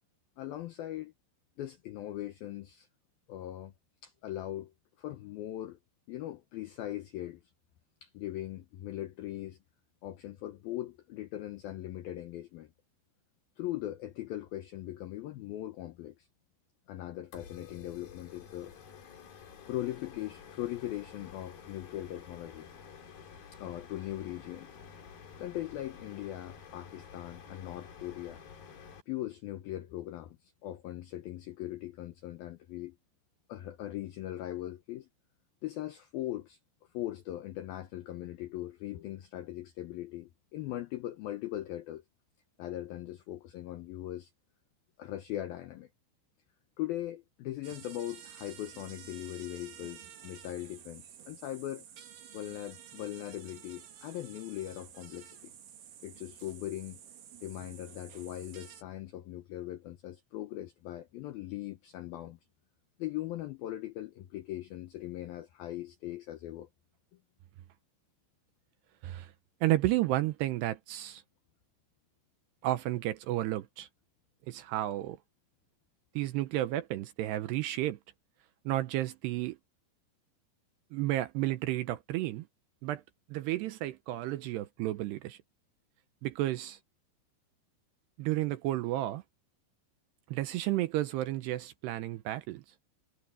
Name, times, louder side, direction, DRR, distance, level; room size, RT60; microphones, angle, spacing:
voice 1, 0.4-1.1 1.6-2.9 3.3-3.7 4.0-5.8 6.1-7.4 8.0-9.6 10.0-12.7 13.6-16.3 16.9-18.7 19.7-22.7 23.6-24.7 25.4-28.4 29.1-33.0 33.5-35.1 35.6-36.6 36.9-42.0 42.6-44.3 45.0-45.9 46.8-51.8 52.3-55.5 56.0-57.0 57.4-62.4 63.0-66.7, left 14 dB, 80° left, 2.1 m, -40 dB
sound 1, 17.3-29.0, left 7 dB, 55° left, 4.6 m, -51 dB
sound 2, 47.6-58.8, right 9 dB, 55° right, 3.1 m, -51 dB
voice 2, 69.6-71.2 72.6-73.9 74.5-75.2 76.2-78.0 78.7-79.6 80.9-82.5 82.8-83.0 83.3-85.4 86.2-86.8 88.2-89.2 90.3-92.6, right 15 dB, 80° right, 2.6 m, -32 dB
omnidirectional pair, 5.5 m